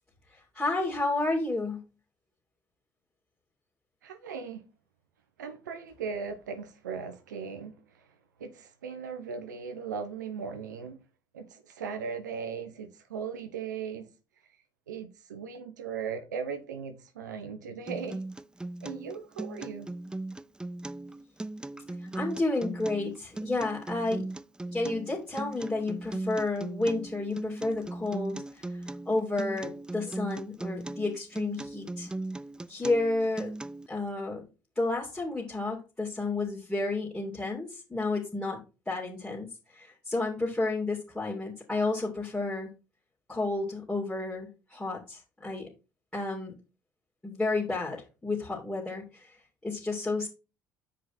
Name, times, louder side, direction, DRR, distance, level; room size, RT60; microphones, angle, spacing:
voice 1, 0.5-1.8 22.1-24.2 24.7-32.1 32.7-33.5 33.9-34.4 34.8-38.6 38.9-39.5 39.7-42.7 43.3-45.7 46.1-46.5 47.2-49.4 49.6-50.3, left 2 dB, 10° left, 3.0 m, -31 dB
voice 2, 4.0-4.6 5.4-8.0 8.4-11.0 11.3-14.1 14.9-18.2 18.8-19.9, right 6 dB, 90° right, 0.9 m, -38 dB
Acoustic guitar, 17.9-33.9, right 2 dB, 10° right, 0.4 m, -38 dB
7.7 x 5.1 x 4.3 m
hypercardioid pair, 60°, 10 cm